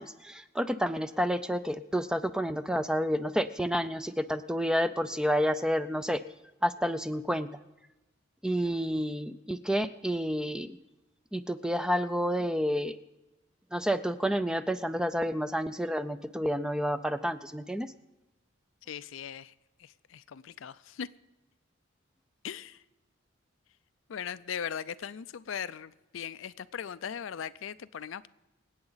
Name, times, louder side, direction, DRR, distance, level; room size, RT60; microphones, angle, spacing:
voice 1, 0.0-6.2 6.6-7.6 8.4-10.8 11.3-13.0 13.7-17.9, equal, 5° right, 0.4 m, -30 dB
voice 2, 18.9-19.5 19.8-21.1 22.4-22.8 24.1-28.3, left 8 dB, 75° left, 0.4 m, -39 dB
25.5 x 8.7 x 4.0 m
head